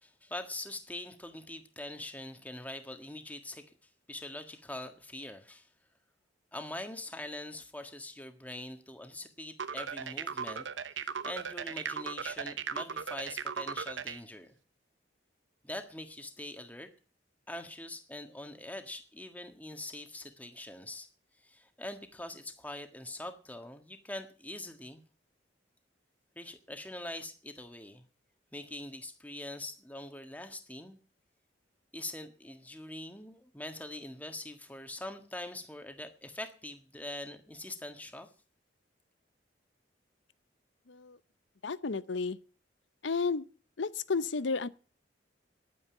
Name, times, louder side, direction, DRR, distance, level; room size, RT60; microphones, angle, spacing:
voice 1, 0.0-5.7 6.5-10.7 10.9-14.5 15.6-16.9 17.5-21.1 21.4-25.0 26.3-28.0 28.5-31.0 31.9-38.3, left 1 dB, 10° left, 1.6 m, -43 dB
sound 1, 9.6-14.2, right 6 dB, 85° right, 0.9 m, -37 dB
voice 2, 40.9-41.2 41.6-42.4 43.0-43.4 43.8-44.7, left 4 dB, 80° left, 0.7 m, -32 dB
11.0 x 9.4 x 9.0 m
head